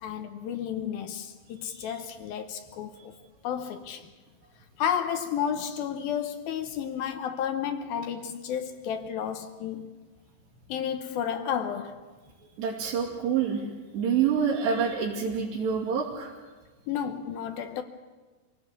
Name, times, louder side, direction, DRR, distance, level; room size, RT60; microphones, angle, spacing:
voice 1, 0.0-3.1 3.4-4.1 4.8-9.9 10.7-12.0 16.9-17.8, left 8 dB, 70° left, 2.5 m, -32 dB
voice 2, 12.6-13.6 13.9-16.3, right 7 dB, 75° right, 4.7 m, -27 dB
25.5 x 17.0 x 8.4 m
omnidirectional pair, 4.9 m